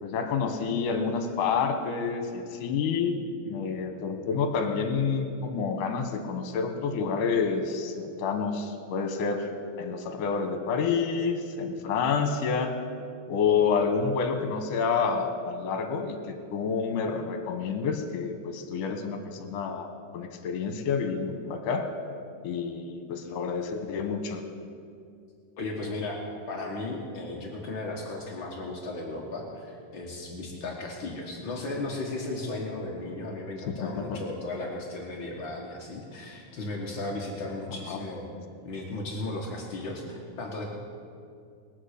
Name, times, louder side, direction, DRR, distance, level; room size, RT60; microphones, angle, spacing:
voice 1, 0.0-9.5 9.8-12.7 13.3-21.9 22.4-24.4 33.7-34.2 37.9-38.0, left 5 dB, 65° left, 6 dB, 2.5 m, -29 dB
voice 2, 25.6-38.3 38.6-40.7, left 2 dB, 90° left, -1 dB, 1.0 m, -35 dB
20.5 x 8.1 x 6.6 m, 2.3 s
omnidirectional pair, 4.4 m